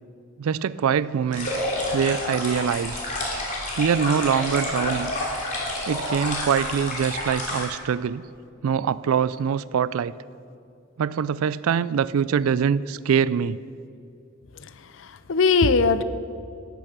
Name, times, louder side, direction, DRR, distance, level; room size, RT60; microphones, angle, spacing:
voice 1, 0.4-1.5 1.9-3.0 3.8-5.1 5.9-8.2 8.6-10.1 11.0-13.6, right 7 dB, 90° right, 18 dB, 0.3 m, -24 dB
sound 1, 1.3-7.7, left 1 dB, 35° left, 3.2 m, -29 dB
voice 2, 15.0-16.0, left 4 dB, 65° left, 13 dB, 0.5 m, -20 dB
13.5 x 9.1 x 6.7 m, 2.5 s
head